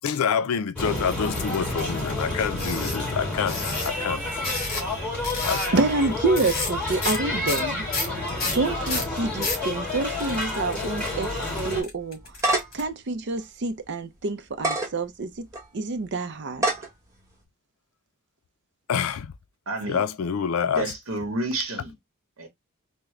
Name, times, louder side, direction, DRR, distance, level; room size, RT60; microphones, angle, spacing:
voice 1, 0.0-3.6 3.8-4.2 5.4-5.8 8.1-8.2 18.9-19.3 19.9-20.9, left 7 dB, 90° left, 0.4 m, -27 dB
sound 1, 0.8-11.8, left 2 dB, 5° left, 2.3 m, -29 dB
sound 2, 1.4-1.8 2.6-3.0 3.5-3.9 4.4-4.9 5.2-5.7 6.4-6.7 7.0-7.2 7.5-9.6 10.2-12.8, left 3 dB, 50° left, 1.5 m, -31 dB
voice 2, 5.7-7.9 8.4-12.2 12.7-15.3 15.7-16.6, right 3 dB, 55° right, 0.6 m, -27 dB
sound 3, 12.1-12.9 13.4-13.5 14.5-14.9 15.5-15.6 16.5-16.9, right 1 dB, 15° right, 1.0 m, -24 dB
voice 3, 19.7-20.0 20.6-21.9 22.4-22.5, right 2 dB, 75° right, 1.0 m, -30 dB
3.6 x 2.1 x 3.1 m
head